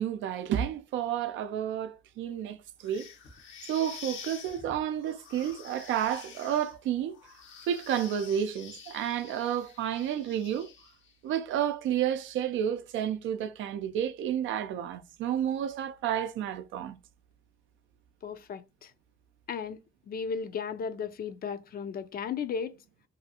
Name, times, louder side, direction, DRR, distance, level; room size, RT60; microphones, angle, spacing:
voice 1, 0.0-3.1 3.7-7.2 7.7-10.7 11.2-17.0, right 10 dB, 80° right, 0.4 m, -31 dB
sound 1, 2.8-11.1, left 6 dB, 75° left, 0.8 m, -48 dB
voice 2, 18.2-18.9 19.5-19.8 20.1-22.8, left 6 dB, 50° left, 0.4 m, -35 dB
2.7 x 2.4 x 2.7 m
cardioid pair, 90°, 20 cm